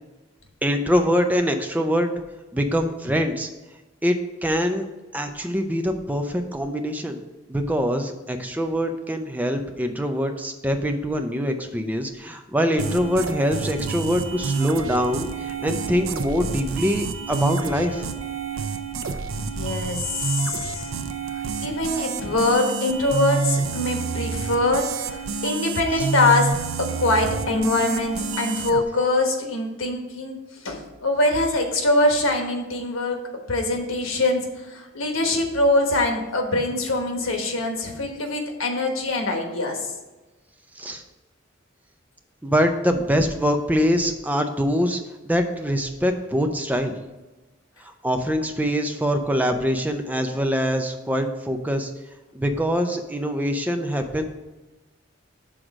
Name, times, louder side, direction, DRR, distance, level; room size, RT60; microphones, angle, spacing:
voice 1, 0.6-2.1 2.5-3.5 4.0-4.2 4.4-4.9 5.1-7.2 7.5-18.1 26.0-26.1 40.8-41.0 42.4-47.0 47.8-51.9 52.3-54.2, equal, 10° right, 5 dB, 0.5 m, -24 dB
sound 1, 12.8-28.8, right 5 dB, 90° right, 0.5 m, -29 dB
voice 2, 19.4-20.8 21.6-26.5 26.9-30.4 30.6-33.2 33.5-34.4 34.7-39.8, left 2 dB, 90° left, 4 dB, 1.2 m, -23 dB
6.3 x 3.8 x 6.0 m, 1.1 s
head